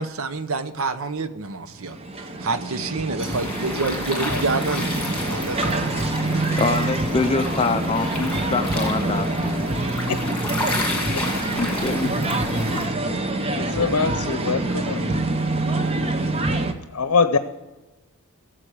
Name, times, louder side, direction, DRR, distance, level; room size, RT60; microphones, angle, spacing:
voice 1, 0.0-6.0, right 3 dB, 65° right, 11 dB, 0.8 m, -28 dB
sound 1, 1.8-16.7, right 2 dB, 25° right, 0.8 m, -26 dB
sound 2, 3.2-12.9, left 2 dB, 5° left, 2.1 m, -31 dB
voice 2, 6.6-9.7 11.6-12.1, left 3 dB, 25° left, 8 dB, 0.4 m, -25 dB
voice 3, 13.6-15.2 16.9-17.4, left 5 dB, 80° left, 10 dB, 0.7 m, -23 dB
16.5 x 7.5 x 4.9 m, 1.2 s
head